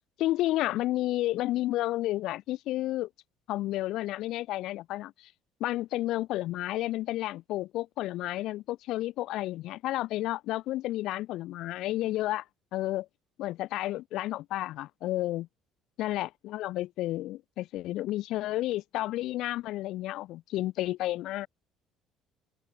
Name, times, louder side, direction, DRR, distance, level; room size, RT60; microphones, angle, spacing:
voice 1, 0.2-3.1 3.5-5.1 5.6-12.4 12.7-13.1 13.4-15.5 16.0-21.5, left 16 dB, 70° left, 1.0 m, -31 dB
cardioid pair, 130°, 0 cm